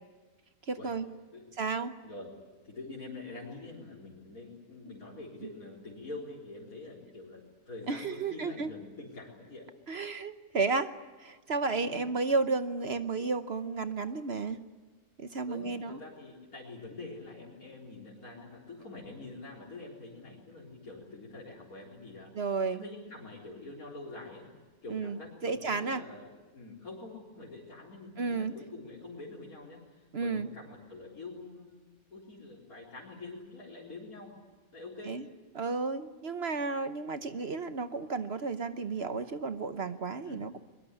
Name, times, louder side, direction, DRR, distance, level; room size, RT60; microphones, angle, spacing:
voice 1, 0.7-1.1 1.6-1.9 7.9-8.7 9.9-10.9 11.2-14.6 15.2-16.0 22.3-22.8 24.9-26.0 28.2-28.6 30.1-30.5 35.0-35.3 35.5-40.6, right 4 dB, 50° right, 10 dB, 1.1 m, -32 dB
voice 2, 2.6-9.7 11.8-12.1 15.5-22.3 22.7-24.5 24.8-31.8 32.1-34.3 34.7-35.2 40.2-40.4, left 2 dB, 90° left, -5 dB, 4.6 m, -46 dB
22.5 x 22.0 x 9.9 m, 1.4 s
omnidirectional pair, 1.5 m